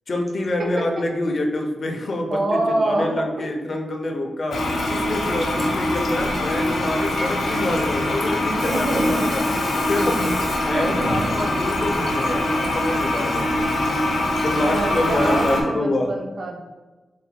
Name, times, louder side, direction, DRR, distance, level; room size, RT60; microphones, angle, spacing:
voice 1, 0.1-9.4 9.8-13.7 14.4-16.1, left 1 dB, 40° left, 3 dB, 0.5 m, -26 dB
voice 2, 2.3-3.3 8.4-9.2 10.7-11.4 14.6-16.6, right 2 dB, 50° right, 1 dB, 0.6 m, -25 dB
Toilet flush, 4.5-15.6, left 1 dB, 75° left, 0.7 m, -23 dB
3.9 x 2.1 x 4.4 m, 1.2 s
wide cardioid pair, 170°, 0 cm